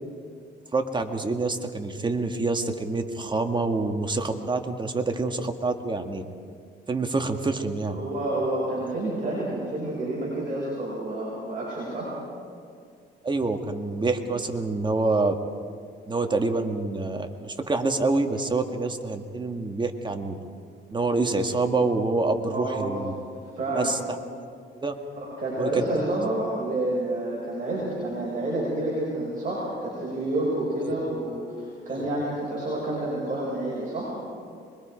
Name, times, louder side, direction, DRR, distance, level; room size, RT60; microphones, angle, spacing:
voice 1, 0.7-6.2 6.9-8.0 13.2-15.4 16.1-20.4 20.9-23.1 23.7-24.0 24.4-24.5 24.8-24.9 25.6-26.2 30.8-30.9 31.9-32.1, right 3 dB, 25° right, 5 dB, 1.8 m, -27 dB
voice 2, 7.9-12.1 22.5-22.9 23.5-23.9 25.2-34.1, right 1 dB, 40° right, -6 dB, 6.8 m, -29 dB
24.5 x 21.5 x 5.2 m, 2.2 s
cardioid pair, 90°, 20 cm